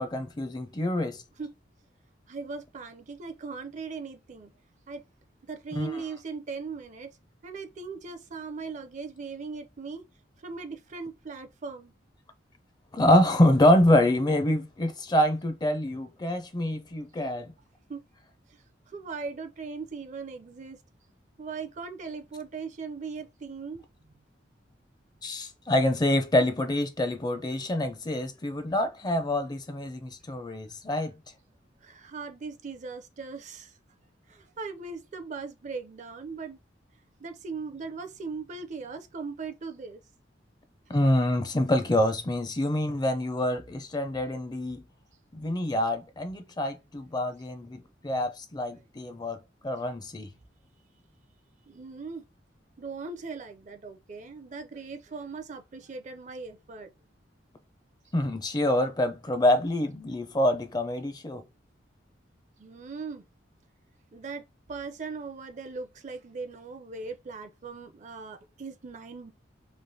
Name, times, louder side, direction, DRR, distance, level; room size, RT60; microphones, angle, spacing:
voice 1, 0.0-1.2 5.8-6.0 12.9-17.5 25.2-31.1 40.9-44.8 45.3-49.4 49.6-50.3 58.1-61.4, left 1 dB, 20° left, 0.4 m, -26 dB
voice 2, 2.3-4.5 4.9-5.0 5.4-7.1 7.4-10.0 10.4-11.9 17.9-18.0 18.5-20.8 21.4-24.1 31.8-33.8 34.3-36.6 37.2-40.0 48.7-48.8 51.7-52.3 52.8-56.9 62.6-63.2 64.1-69.3, right 4 dB, 40° right, 0.5 m, -39 dB
3.2 x 2.5 x 2.7 m
head